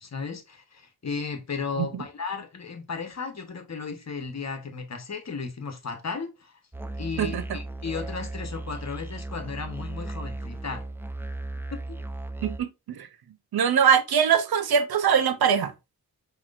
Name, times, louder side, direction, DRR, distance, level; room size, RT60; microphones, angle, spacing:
voice 1, 0.0-6.6 7.0-10.9 11.7-12.0, left 5 dB, 45° left, 1.1 m, -35 dB
Musical instrument, 6.7-12.6, right 2 dB, 5° right, 0.5 m, -36 dB
voice 2, 12.4-13.1 13.5-15.7, right 7 dB, 75° right, 0.7 m, -22 dB
5.8 x 3.1 x 2.5 m
cardioid pair, 60°, 37 cm